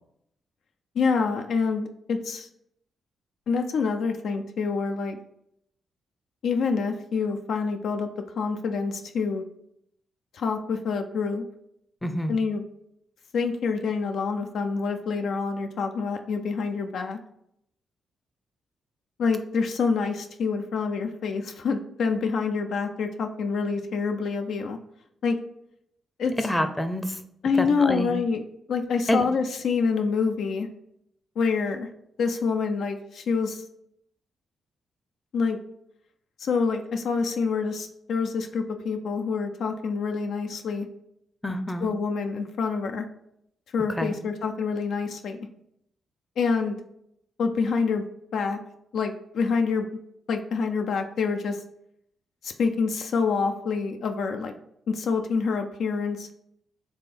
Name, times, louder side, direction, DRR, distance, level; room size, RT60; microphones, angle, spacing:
voice 1, 1.0-2.5 3.5-5.2 6.4-8.1 8.4-9.4 10.3-11.4 12.3-12.6 13.3-17.2 19.2-24.8 25.2-25.4 26.2-26.3 27.4-28.4 28.7-30.7 31.4-31.9 32.2-33.7 35.3-35.6 36.4-40.9 41.8-43.1 43.7-45.5 46.4-46.8 47.4-48.0 48.3-48.6 48.9-49.9 50.3-51.6 52.4-54.5 54.9-56.3, left 5 dB, 70° left, 5 dB, 0.4 m, -26 dB
voice 2, 12.0-12.3 26.4-27.2 27.6-28.1 29.1-29.2 41.4-41.9 44.0-44.1, left 1 dB, 15° left, 9 dB, 0.6 m, -27 dB
3.6 x 3.3 x 4.2 m, 0.75 s
supercardioid pair, 50°, 0 cm